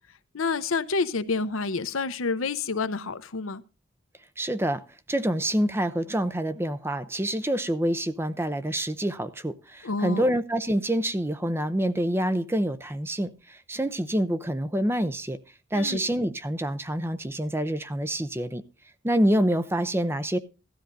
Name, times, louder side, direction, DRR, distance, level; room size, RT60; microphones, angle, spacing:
voice 1, 0.3-3.6 9.8-10.3 15.7-16.0, left 4 dB, 85° left, 0.8 m, -28 dB
voice 2, 4.4-4.8 5.1-15.4 15.7-18.6 19.0-20.4, right 1 dB, 10° right, 0.5 m, -27 dB
17.0 x 13.0 x 2.6 m
head